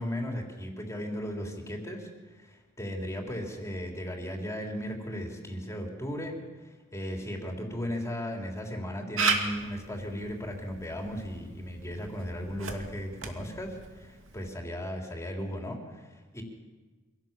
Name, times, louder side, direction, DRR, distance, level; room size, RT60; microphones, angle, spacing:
voice 1, 0.0-6.4 6.6-16.4, equal, 15° left, 1 dB, 3.5 m, -36 dB
Camera, 9.2-14.5, right 4 dB, 90° right, 2.5 m, -35 dB
25.0 x 17.5 x 7.4 m, 1.3 s
head